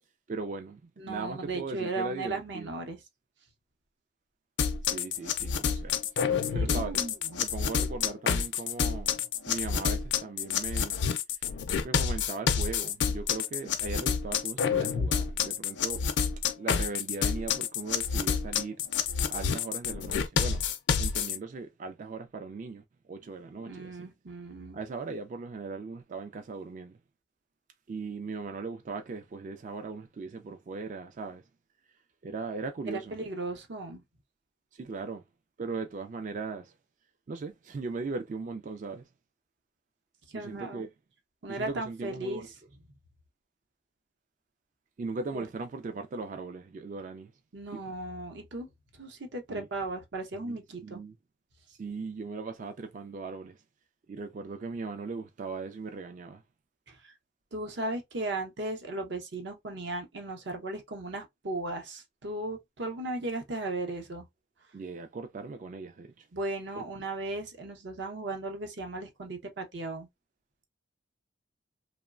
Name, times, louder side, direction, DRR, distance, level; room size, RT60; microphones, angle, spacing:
voice 1, 0.3-2.7 4.9-6.0 6.5-7.1 7.4-9.2 9.5-11.0 11.8-16.0 16.6-18.8 19.3-20.7 21.0-24.1 24.7-27.0 27.9-31.4 32.2-33.2 34.7-35.2 35.6-36.7 37.3-39.0 40.3-40.9 41.5-42.5 45.0-47.3 47.7-47.8 49.5-49.7 50.4-51.1 51.7-53.6 54.1-56.4 64.7-66.3, right 4 dB, 40° right, 0.3 m, -38 dB
voice 2, 1.0-3.0 6.3-7.4 23.7-24.8 32.9-34.0 40.3-40.9 41.4-42.5 45.3-45.4 47.5-48.7 48.9-51.0 56.9-57.1 57.5-64.2 66.3-70.1, right 2 dB, 65° right, 0.7 m, -36 dB
sound 1, 4.6-21.4, left 7 dB, 65° left, 0.4 m, -28 dB
3.0 x 2.1 x 2.3 m
head